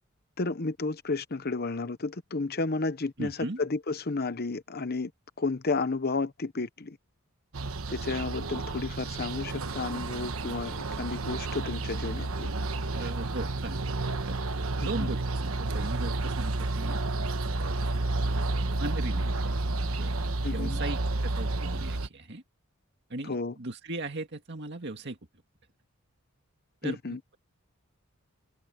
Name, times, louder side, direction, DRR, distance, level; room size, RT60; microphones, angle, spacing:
voice 1, 0.4-5.1 5.4-7.0 7.9-12.5 14.8-15.1 20.4-20.8 23.2-23.5 26.8-27.2, left 3 dB, 45° left, 0.9 m, -32 dB
voice 2, 3.2-3.6 11.6-12.3 12.8-13.8 14.3-17.0 17.4-17.8 18.6-19.6 19.8-22.4 23.1-25.2 26.8-27.0, right 2 dB, 55° right, 2.1 m, -38 dB
sound 1, 7.5-22.1, right 2 dB, 75° right, 1.2 m, -31 dB
open air
head